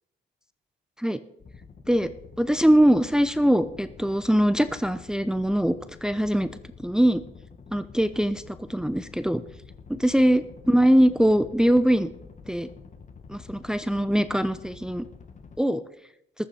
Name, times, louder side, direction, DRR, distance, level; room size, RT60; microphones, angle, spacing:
sound 1, 1.4-15.6, left 5 dB, 40° left, 1.6 m, -48 dB
voice 1, 2.4-5.7 6.0-6.5 6.8-7.2 7.7-9.4 9.9-12.1 12.5-12.7 13.3-15.1 15.6-15.8, equal, 5° right, 12 dB, 0.7 m, -22 dB
14.0 x 13.0 x 4.4 m, 0.80 s
cardioid pair, 90°, 20 cm